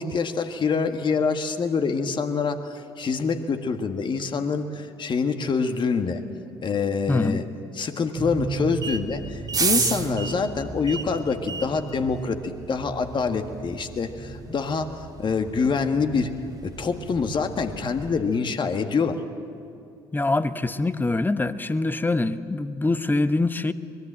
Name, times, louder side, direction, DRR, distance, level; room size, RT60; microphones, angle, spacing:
voice 1, 0.0-6.2 6.6-7.4 7.7-16.3 16.6-19.2, left 5 dB, 40° left, 7 dB, 1.8 m, -26 dB
voice 2, 7.1-7.4 20.1-23.7, left 2 dB, 15° left, 13 dB, 1.0 m, -24 dB
sound 1, 8.2-18.2, right 4 dB, 30° right, 1.8 m, -32 dB
24.5 x 21.0 x 7.6 m, 2.6 s
hypercardioid pair, 55°, 13 cm